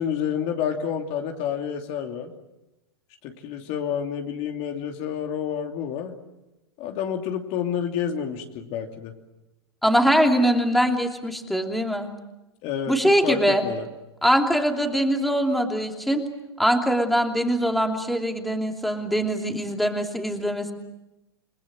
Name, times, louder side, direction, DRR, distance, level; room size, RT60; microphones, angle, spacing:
voice 1, 0.0-2.3 3.2-6.1 6.8-9.1 12.6-12.9 13.2-13.8, left 8 dB, 45° left, 4 dB, 2.8 m, -29 dB
voice 2, 9.8-12.1 12.9-13.6 14.2-16.2 16.6-20.7, equal, ahead, 3 dB, 2.9 m, -22 dB
29.5 x 20.5 x 7.7 m, 0.97 s
hypercardioid pair, 105°, 14 cm